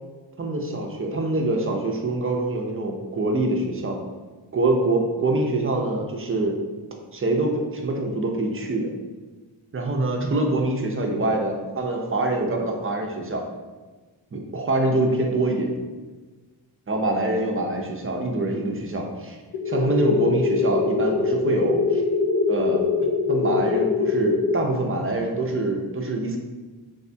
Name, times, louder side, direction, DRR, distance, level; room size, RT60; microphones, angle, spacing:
voice 1, 0.4-4.0 4.5-6.6 7.1-8.9 9.7-13.5 14.3-15.7 16.9-19.4 19.7-22.0 22.5-22.8 23.3-26.4, right 2 dB, 25° right, 2 dB, 0.5 m, -25 dB
sound 1, 19.5-24.5, left 4 dB, 45° left, 0.4 m, -23 dB
3.4 x 2.2 x 2.6 m, 1.3 s
cardioid pair, 40°, 49 cm